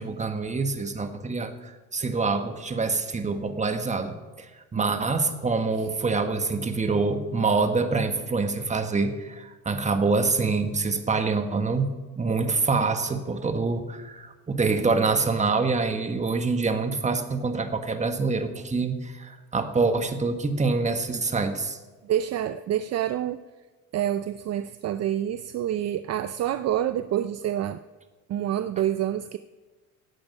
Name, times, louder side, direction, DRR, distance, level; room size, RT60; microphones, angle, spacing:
voice 1, 0.0-11.9 12.2-21.8, right 4 dB, 20° right, 7 dB, 1.4 m, -26 dB
voice 2, 4.7-5.0 22.0-23.4 23.9-27.8 28.3-29.4, right 11 dB, 50° right, 12 dB, 0.5 m, -27 dB
16.0 x 8.8 x 5.5 m, 1.3 s
cardioid pair, 105°, 33 cm